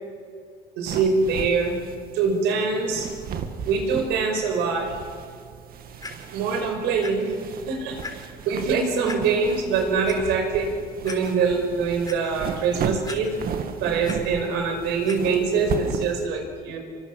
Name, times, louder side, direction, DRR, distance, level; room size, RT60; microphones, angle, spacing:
sound 1, 0.8-16.3, right 7 dB, 60° right, 2.0 m, -35 dB
voice 1, 0.8-1.8 2.1-3.1 3.7-4.9 6.3-7.3 7.7-10.7 11.0-13.3 13.8-16.8, right 5 dB, 90° right, 4 dB, 5.7 m, -24 dB
Clock, 6.0-6.1 7.0-7.1 7.5-7.6 8.0-8.1 9.0-9.2 9.8-10.2 10.7-10.8 11.0-11.2 11.6-12.2 13.0-13.6 13.8-14.2 15.0-15.2 15.9-16.0, left 3 dB, 20° left, 4.3 m, -37 dB
25.5 x 24.0 x 7.5 m, 2.2 s
cardioid pair, 110°, 17 cm